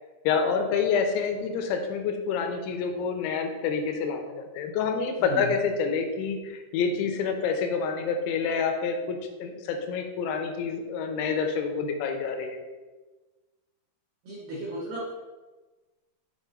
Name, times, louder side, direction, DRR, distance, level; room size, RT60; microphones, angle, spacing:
voice 1, 0.2-12.6, left 5 dB, 80° left, 4 dB, 2.8 m, -28 dB
voice 2, 14.3-15.1, right 1 dB, 70° right, -6 dB, 2.4 m, -35 dB
7.3 x 4.8 x 3.8 m, 1.2 s
omnidirectional pair, 5.9 m